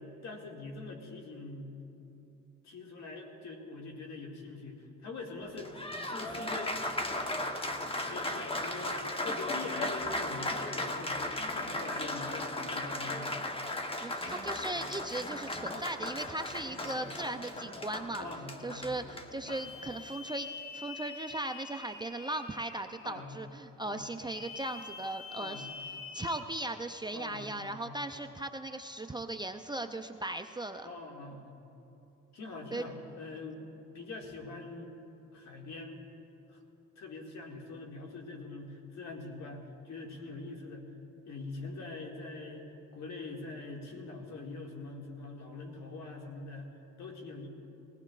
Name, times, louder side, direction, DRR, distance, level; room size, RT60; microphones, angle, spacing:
voice 1, 0.0-1.8 2.6-7.0 7.9-13.3 16.8-17.1 18.2-18.9 23.0-23.5 23.8-24.1 25.4-25.7 27.1-28.0 30.8-31.6 32.3-34.9 35.3-36.0 36.5-36.6 37.0-40.9 41.3-47.5, left 3 dB, 60° left, 0 dB, 2.2 m, -44 dB
Applause, 5.4-20.1, left 1 dB, 20° left, 1.0 m, -36 dB
voice 2, 14.0-18.3 18.6-25.7 26.1-30.9 32.7-32.9, right 1 dB, 15° right, 6 dB, 0.4 m, -38 dB
sound 1, 19.4-23.3 24.2-26.4, left 5 dB, 80° left, 1.7 m, -46 dB
20.5 x 17.0 x 2.4 m, 2.9 s
cardioid pair, 90°, 30 cm